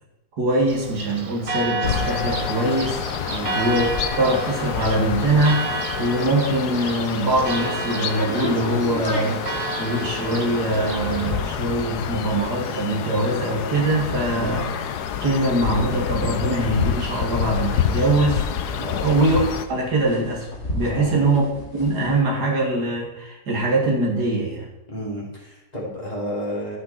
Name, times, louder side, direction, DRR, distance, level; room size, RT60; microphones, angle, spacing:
voice 1, 0.4-14.7 15.2-20.5 20.7-24.7, right 2 dB, 75° right, -1 dB, 2.8 m, -23 dB
Church bell, 0.7-11.4, right 3 dB, 35° right, 0.5 m, -31 dB
sound 1, 1.8-19.7, left 9 dB, 80° left, 1.3 m, -28 dB
sound 2, 8.2-17.7 18.0-18.1 18.3-22.2, left 1 dB, 45° left, 2.1 m, -35 dB
voice 2, 14.3-14.6 18.8-19.2 20.9-21.3 24.9-26.8, equal, 25° left, -5 dB, 3.1 m, -31 dB
14.0 x 6.0 x 4.2 m, 0.99 s
omnidirectional pair, 1.7 m